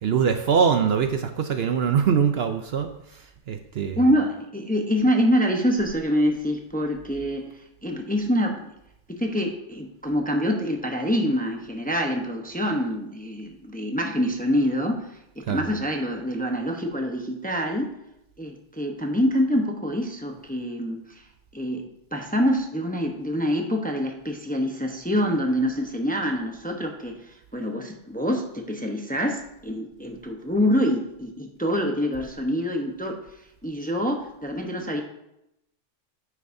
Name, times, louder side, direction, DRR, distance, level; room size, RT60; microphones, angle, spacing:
voice 1, 0.0-2.9 3.5-4.0 15.5-15.6, right 7 dB, 60° right, 7 dB, 0.8 m, -22 dB
voice 2, 4.0-7.5 7.8-8.7 9.1-15.1 15.4-17.9 18.4-21.2 21.5-21.8 22.1-33.2 33.6-35.0, equal, 10° left, 2 dB, 0.7 m, -25 dB
9.4 x 9.1 x 2.6 m, 0.82 s
omnidirectional pair, 1.3 m